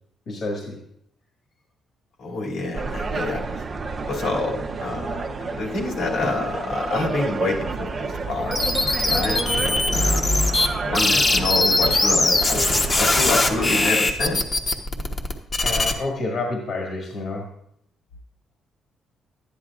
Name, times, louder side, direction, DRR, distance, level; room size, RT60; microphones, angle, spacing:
voice 1, 0.3-0.8 15.6-17.5, left 2 dB, 60° left, -1 dB, 1.8 m, -29 dB
voice 2, 2.2-3.6 4.1-5.2 5.5-8.6 9.0-14.4, left 3 dB, 80° left, -3 dB, 2.5 m, -27 dB
sound 1, 2.7-13.9, right 4 dB, 40° right, 0.8 m, -30 dB
sound 2, 8.5-10.7 10.9-15.9, left 2 dB, 35° left, 1.1 m, -21 dB
11.0 x 9.8 x 2.4 m, 0.72 s
cardioid pair, 90°, 0 cm